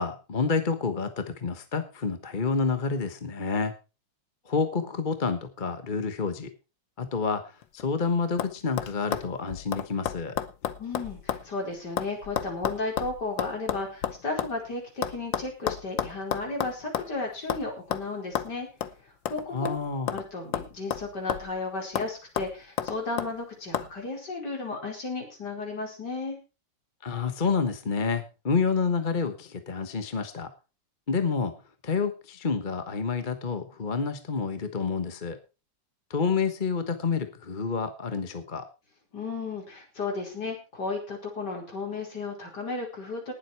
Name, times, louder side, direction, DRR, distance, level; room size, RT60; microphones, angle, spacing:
voice 1, 0.0-3.7 4.5-6.5 7.0-10.3 19.5-20.2 27.0-30.5 31.1-31.5 31.8-35.4 36.1-38.6, left 5 dB, 30° left, 9 dB, 1.2 m, -28 dB
sound 1, 7.6-8.0 8.4-8.5 8.8-11.5 11.7-14.5 15.0-17.1 17.5-17.6 17.9-18.0 18.3-18.5 18.8-18.9 19.2-20.3 20.5-21.6 21.9-22.1 22.4-23.3 23.7-23.9, left 10 dB, 75° left, 1.7 m, -31 dB
voice 2, 10.8-18.7 19.3-19.8 20.1-26.4 39.1-43.3, left 3 dB, 60° left, 1 dB, 5.2 m, -34 dB
19.5 x 7.8 x 4.6 m, 0.31 s
omnidirectional pair, 2.1 m